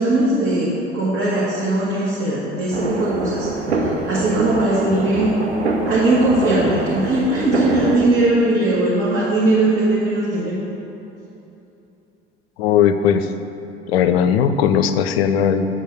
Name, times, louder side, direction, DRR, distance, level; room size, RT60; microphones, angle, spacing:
voice 1, 0.0-3.5 3.8-5.3 5.9-10.6, right 2 dB, 40° right, -8 dB, 1.7 m, -19 dB
sound 1, 2.7-8.0, right 2 dB, 85° right, 0.7 m, -24 dB
voice 2, 12.6-13.3 13.9-15.7, left 8 dB, 70° left, 10 dB, 0.5 m, -17 dB
7.9 x 3.8 x 6.5 m, 2.9 s
figure-of-eight pair, 60°, 32 cm